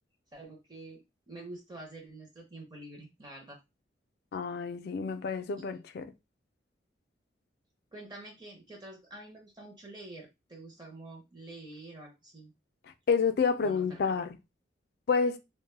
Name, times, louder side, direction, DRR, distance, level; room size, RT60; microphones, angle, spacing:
voice 1, 0.3-3.6 5.7-5.8 7.9-12.5 13.6-14.2, right 2 dB, 20° right, 0.6 m, -47 dB
voice 2, 4.3-6.1 13.1-14.4 15.1-15.4, left 5 dB, 55° left, 0.3 m, -29 dB
2.1 x 2.0 x 3.1 m
head